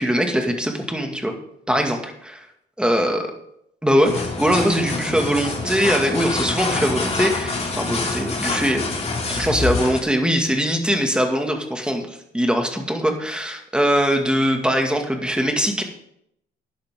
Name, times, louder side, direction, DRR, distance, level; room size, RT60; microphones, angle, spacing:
voice 1, 0.0-1.3 1.7-2.5 2.8-3.3 3.8-8.9 9.3-15.8, equal, 5° right, 3 dB, 2.1 m, -21 dB
sound 1, 4.0-10.0, left 3 dB, 30° left, 2.8 m, -26 dB
12.5 x 10.0 x 3.8 m, 0.75 s
cardioid pair, 90°, 20 cm